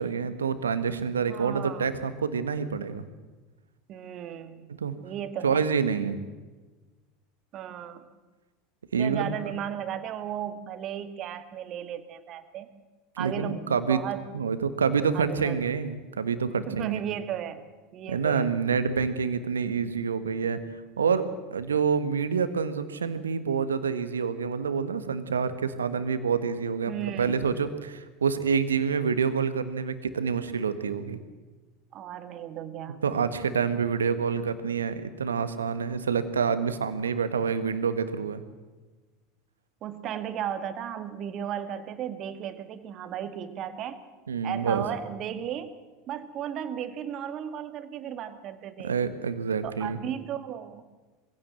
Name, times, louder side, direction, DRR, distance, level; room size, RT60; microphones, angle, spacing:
voice 1, 0.0-3.0 4.7-4.9 5.4-6.2 8.9-9.6 13.2-14.0 14.3-17.0 18.1-20.6 21.0-31.2 33.0-38.4 44.3-44.8 48.8-50.0, right 6 dB, 85° right, 11 dB, 1.5 m, -27 dB
voice 2, 1.3-1.9 3.9-4.7 5.0-5.7 7.5-8.1 8.9-12.7 13.2-13.6 13.9-14.3 15.1-15.6 16.7-17.6 17.9-18.5 26.9-27.4 31.9-33.0 39.8-44.0 44.4-45.8 46.1-48.9 49.6-50.9, right 9 dB, 45° right, 10 dB, 2.0 m, -35 dB
22.5 x 16.5 x 7.7 m, 1.3 s
hypercardioid pair, 80°, 0 cm